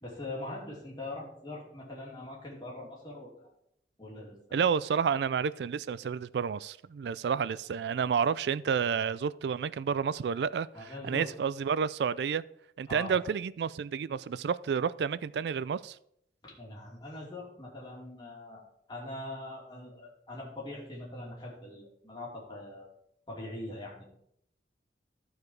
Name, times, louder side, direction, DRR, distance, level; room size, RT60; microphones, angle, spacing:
voice 1, 0.0-3.5 4.0-4.6 10.7-11.3 12.9-13.2 16.4-18.6 18.9-22.9 23.3-24.0, left 1 dB, 25° left, -4 dB, 2.8 m, -42 dB
voice 2, 4.5-12.4 12.8-16.0, right 6 dB, 70° right, 18 dB, 0.3 m, -30 dB
13.0 x 4.8 x 4.7 m, 0.71 s
head